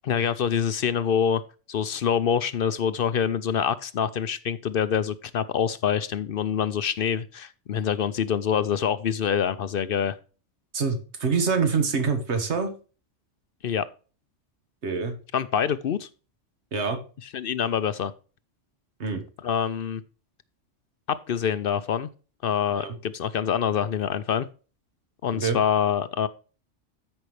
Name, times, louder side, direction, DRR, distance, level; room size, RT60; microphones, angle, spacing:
voice 1, 0.0-1.4 1.7-10.2 13.6-13.9 15.3-16.1 17.3-18.1 19.4-20.0 21.1-22.1 22.4-24.5 25.2-26.3, left 8 dB, 60° left, 15 dB, 0.7 m, -25 dB
voice 2, 10.7-12.7 14.8-15.2 16.7-17.0 19.0-19.2 22.8-23.0 25.3-25.6, right 5 dB, 65° right, 7 dB, 1.8 m, -25 dB
13.5 x 5.4 x 3.2 m, 0.36 s
omnidirectional pair, 1.2 m